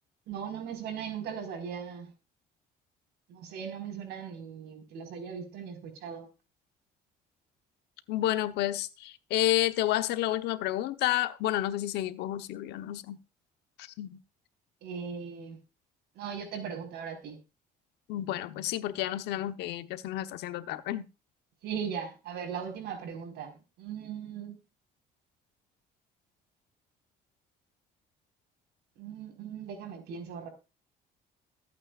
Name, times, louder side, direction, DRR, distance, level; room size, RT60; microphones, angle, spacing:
voice 1, 0.3-2.1 3.3-6.3 14.8-15.6 16.1-17.4 21.6-23.5 23.8-24.6 29.0-30.5, right 7 dB, 80° right, 4.8 m, -38 dB
voice 2, 8.1-13.2 13.8-14.2 18.1-21.1, left 13 dB, 85° left, 1.1 m, -30 dB
22.0 x 8.7 x 2.5 m
cardioid pair, 110°, 17 cm